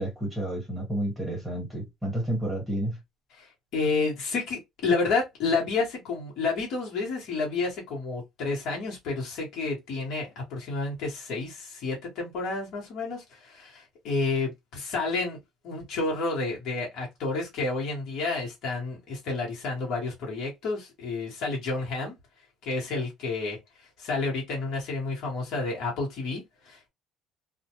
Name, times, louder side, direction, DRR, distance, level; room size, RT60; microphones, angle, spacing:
voice 1, 0.0-3.0, right 1 dB, 5° right, 1.3 m, -30 dB
voice 2, 3.3-15.4 15.6-22.1 22.6-23.6 24.0-26.9, left 3 dB, 50° left, 1.1 m, -30 dB
2.2 x 2.2 x 2.8 m
cardioid pair, 175°, 0 cm